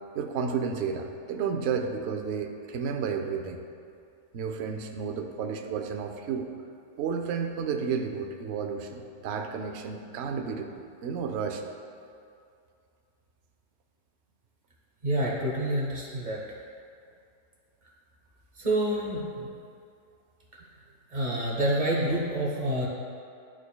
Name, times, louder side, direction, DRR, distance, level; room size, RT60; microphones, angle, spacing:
voice 1, 0.1-3.6 4.3-6.5 7.0-10.7 11.0-11.6, right 6 dB, 65° right, 4 dB, 0.7 m, -32 dB
voice 2, 15.0-16.4 18.5-19.5 21.1-22.9, right 1 dB, 35° right, -4 dB, 1.0 m, -28 dB
11.5 x 4.6 x 2.2 m, 2.4 s
omnidirectional pair, 1.6 m